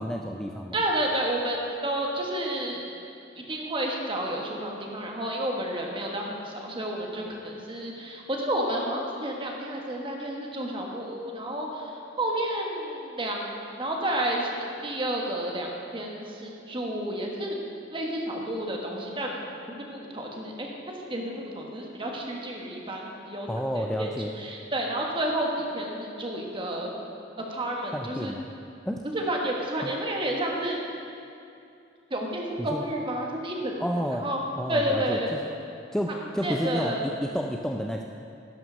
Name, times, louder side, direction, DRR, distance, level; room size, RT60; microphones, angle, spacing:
voice 1, 0.0-0.8 23.5-24.3 27.9-28.5 28.9-29.0 29.8-29.9 32.6-32.8 33.8-34.3 34.6-35.4 35.9-38.0, equal, 5° left, 2 dB, 0.3 m, -30 dB
voice 2, 0.7-2.8 3.4-14.5 14.8-17.5 17.9-19.3 19.8-20.7 21.1-23.5 23.7-24.1 24.4-26.9 27.5-28.3 29.1-30.8 32.1-33.7 34.2-34.4 34.7-35.4 36.1-37.1, right 1 dB, 30° right, 0 dB, 1.4 m, -30 dB
11.0 x 6.1 x 6.3 m, 2.6 s
head